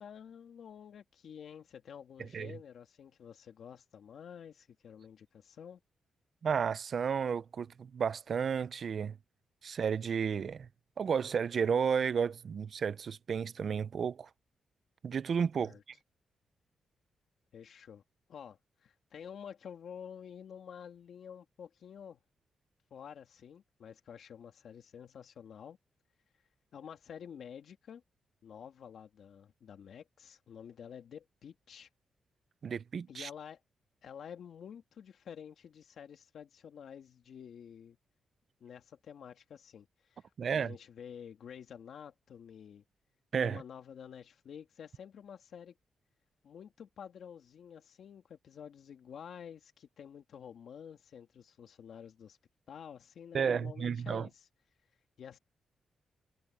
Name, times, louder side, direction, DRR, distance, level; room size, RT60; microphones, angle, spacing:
voice 1, 0.0-5.8 15.6-15.8 17.5-18.0 18.3-22.2 22.9-25.8 26.7-28.0 28.4-31.9 33.1-33.6 34.0-38.0 38.6-42.8 43.4-45.7 46.4-52.4 52.7-54.5 55.2-55.4, left 8 dB, 65° left, 2.5 m, -49 dB
voice 2, 6.4-9.2 9.6-10.7 11.0-14.3 15.0-15.7 32.6-33.3 40.4-40.7 43.3-43.6 53.3-54.3, right 6 dB, 45° right, 0.5 m, -32 dB
wide cardioid pair, 150°, 0 cm